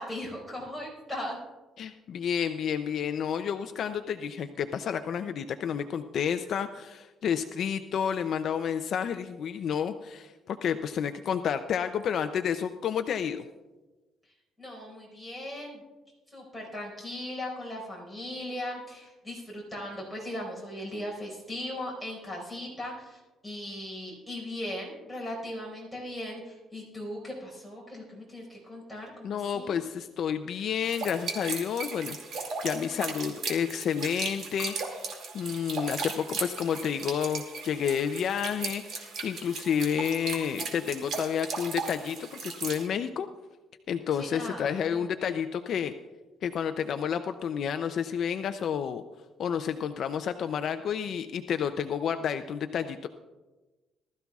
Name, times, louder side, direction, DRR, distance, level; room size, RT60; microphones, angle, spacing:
voice 1, 0.0-1.4 2.4-2.5 14.2-15.8 16.3-29.8 44.1-45.1, left 1 dB, ahead, -2 dB, 4.8 m, -38 dB
voice 2, 1.8-13.4 29.2-35.1 35.3-43.3 43.9-45.9 46.4-49.0 49.4-53.1, left 8 dB, 50° left, 9 dB, 0.5 m, -30 dB
sound 1, 30.8-42.9, right 4 dB, 60° right, 2.3 m, -37 dB
19.5 x 13.5 x 2.4 m, 1.2 s
cardioid pair, 150°, 0 cm